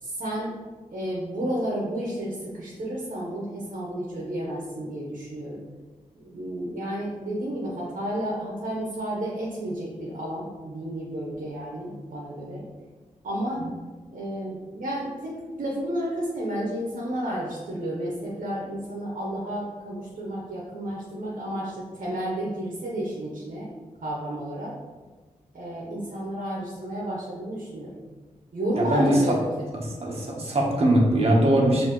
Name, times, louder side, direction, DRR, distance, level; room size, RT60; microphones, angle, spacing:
voice 1, 0.0-0.5 0.9-5.6 6.2-12.6 13.2-13.6 14.1-23.7 24.0-24.7 25.5-27.9 28.5-29.7, right 1 dB, 70° right, -4 dB, 0.9 m, -31 dB
voice 2, 28.8-29.1 30.0-31.9, right 1 dB, 50° right, -2 dB, 1.0 m, -21 dB
5.5 x 2.7 x 3.1 m, 1.3 s
cardioid pair, 50°, 14 cm